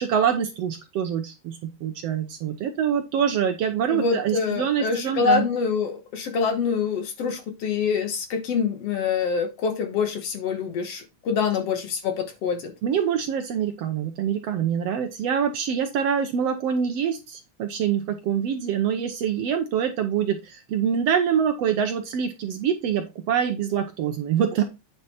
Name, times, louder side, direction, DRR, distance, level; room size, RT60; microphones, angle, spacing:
voice 1, 0.0-5.4 12.8-24.6, right 8 dB, 70° right, 1.7 m, -25 dB
voice 2, 3.9-12.7, left 6 dB, 60° left, 2.1 m, -25 dB
9.3 x 5.1 x 4.2 m
omnidirectional pair, 3.5 m